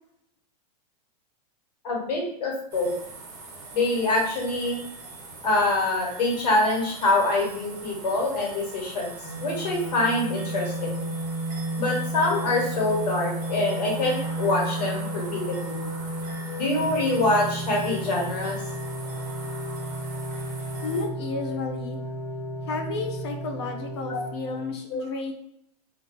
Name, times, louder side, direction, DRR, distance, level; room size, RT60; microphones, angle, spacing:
voice 1, 1.8-2.9 3.7-4.8 5.4-9.1 9.4-11.0 11.8-15.8 16.6-18.5 24.1-24.2 24.9-25.0, left 2 dB, 85° left, -1 dB, 1.4 m, -25 dB
sound 1, 2.7-21.0, right 3 dB, 25° right, 0.6 m, -42 dB
sound 2, 9.2-24.7, right 1 dB, 25° left, 1.1 m, -33 dB
voice 2, 20.8-22.0 22.7-25.3, left 3 dB, 40° left, 4 dB, 0.5 m, -32 dB
2.5 x 2.3 x 3.8 m, 0.72 s
supercardioid pair, 180°, 20 cm